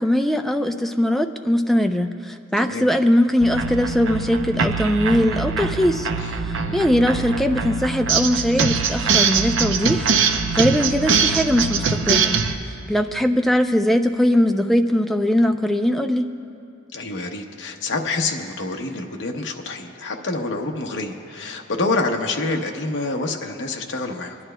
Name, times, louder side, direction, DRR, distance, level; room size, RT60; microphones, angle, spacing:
voice 1, 0.0-6.1 6.4-12.4 12.9-16.3, equal, ahead, 5 dB, 0.4 m, -20 dB
sound 1, 3.4-12.5, right 5 dB, 70° right, 0.6 m, -22 dB
voice 2, 16.9-24.4, left 3 dB, 65° left, 2 dB, 0.8 m, -27 dB
28.0 x 10.5 x 2.2 m, 2.5 s
head